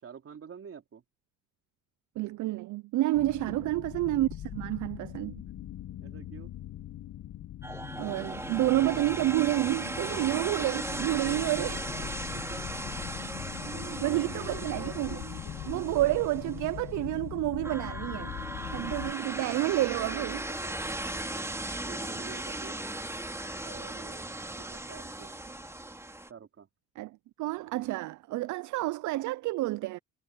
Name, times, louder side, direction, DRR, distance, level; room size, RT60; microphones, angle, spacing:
voice 1, 0.0-1.0 6.0-6.5 11.0-12.6 13.6-15.7 19.4-21.5 21.8-22.8 23.6-24.3 24.6-25.6 26.3-26.7, right 7 dB, 50° right, 3.3 m, -47 dB
voice 2, 2.2-5.4 8.0-11.8 14.0-15.2 15.7-18.3 18.7-20.4 27.0-27.1 27.4-30.0, right 17 dB, 75° right, 0.5 m, -29 dB
sound 1, 3.1-19.1, left 12 dB, 65° left, 1.2 m, -41 dB
sound 2, 7.6-16.9 17.6-26.3, right 1 dB, 10° right, 2.7 m, -37 dB
cardioid pair, 90°, 30 cm